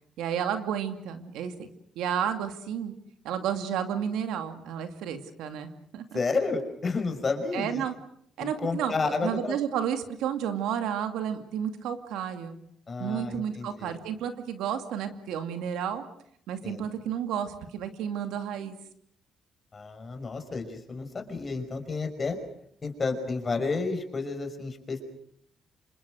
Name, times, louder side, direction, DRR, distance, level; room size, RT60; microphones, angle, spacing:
voice 1, 0.2-1.7 2.0-2.9 3.2-6.2 7.5-7.9 8.4-12.6 13.0-16.0 16.5-18.8, right 9 dB, 90° right, 7 dB, 2.4 m, -31 dB
voice 2, 6.1-7.8 8.4-9.6 12.9-14.0 16.6-16.9 19.7-22.4 22.8-25.0, left 4 dB, 35° left, 6 dB, 5.7 m, -31 dB
27.5 x 26.5 x 6.4 m, 0.67 s
cardioid pair, 90°, 0 cm